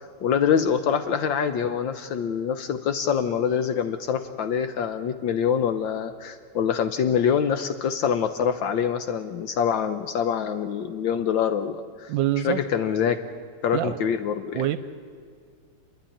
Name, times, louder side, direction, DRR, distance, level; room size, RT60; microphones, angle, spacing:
voice 1, 0.2-12.1 12.4-13.2 13.6-14.6, left 7 dB, 75° left, 9 dB, 1.5 m, -25 dB
voice 2, 12.1-12.6 13.7-14.0 14.5-14.8, right 12 dB, 70° right, 12 dB, 1.3 m, -24 dB
30.0 x 10.5 x 10.0 m, 2.1 s
omnidirectional pair, 2.2 m